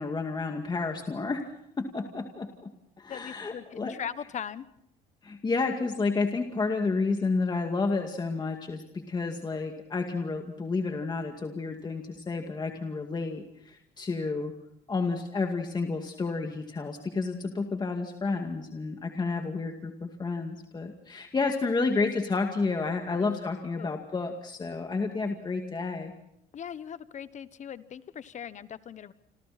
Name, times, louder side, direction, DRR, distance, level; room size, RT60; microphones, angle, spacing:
voice 1, 0.0-1.4 1.8-2.7 3.0-4.0 5.2-14.5 14.9-26.1, left 4 dB, 25° left, 4 dB, 2.2 m, -30 dB
voice 2, 3.1-4.6 23.1-23.3 23.8-23.9 26.5-29.1, left 8 dB, 45° left, 14 dB, 1.2 m, -39 dB
28.0 x 27.5 x 4.3 m, 0.74 s
cardioid pair, 110°, 17 cm